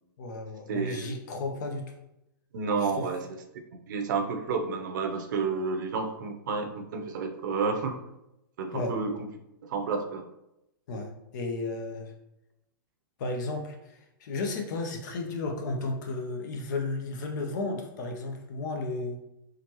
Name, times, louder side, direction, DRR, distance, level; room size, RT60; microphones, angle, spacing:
voice 1, 0.2-1.9 3.0-3.1 8.7-8.9 10.9-12.1 13.2-19.2, left 3 dB, 55° left, 3 dB, 0.8 m, -33 dB
voice 2, 0.7-1.1 2.5-3.3 3.9-8.0 8.6-9.1 9.6-10.3, right 4 dB, 60° right, 4 dB, 0.7 m, -30 dB
4.0 x 3.2 x 3.0 m, 0.86 s
hypercardioid pair, 150°, 12 cm